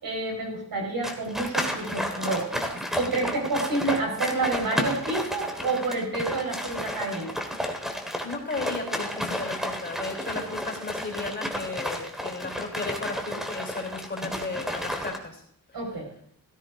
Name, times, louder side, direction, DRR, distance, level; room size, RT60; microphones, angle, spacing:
voice 1, 0.0-2.7 3.0-7.4 15.7-16.1, right 2 dB, 85° right, 1 dB, 4.8 m, -29 dB
sound 1, 1.0-15.2, equal, ahead, 1.5 m, -32 dB
voice 2, 8.2-15.4 15.7-15.8, left 3 dB, 30° left, 2 dB, 3.4 m, -34 dB
17.0 x 13.5 x 2.6 m, 0.68 s
wide cardioid pair, 170°, 35 cm